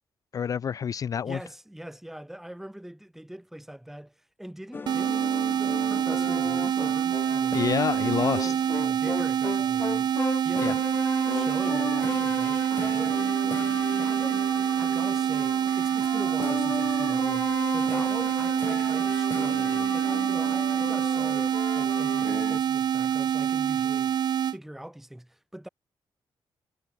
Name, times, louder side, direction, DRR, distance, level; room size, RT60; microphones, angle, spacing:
voice 1, 0.3-1.4 7.5-8.5 10.6-10.7, left 7 dB, 40° left, 0.5 m, -28 dB
voice 2, 1.2-7.7 8.0-10.2 10.4-10.9 11.3-13.2 14.0-14.4 14.8-24.2 24.5-25.7, right 1 dB, 5° right, 3.4 m, -42 dB
sound 1, 4.7-22.6, left 4 dB, 25° left, 0.9 m, -36 dB
sound 2, 4.9-24.6, right 9 dB, 55° right, 0.7 m, -26 dB
wide cardioid pair, 160°, 9 cm